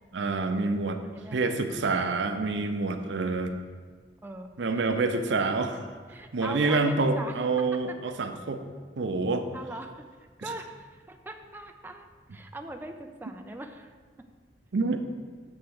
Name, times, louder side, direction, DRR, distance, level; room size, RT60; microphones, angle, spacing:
voice 1, 0.1-1.0 1.3-3.5 4.6-5.8 6.3-8.6 9.0-9.4 14.7-15.0, right 3 dB, 85° right, 6 dB, 0.6 m, -27 dB
voice 2, 1.0-1.5 4.2-4.9 6.1-8.0 9.5-10.0 10.4-13.9, right 2 dB, 10° right, 5 dB, 0.4 m, -41 dB
8.0 x 3.5 x 6.4 m, 1.5 s
head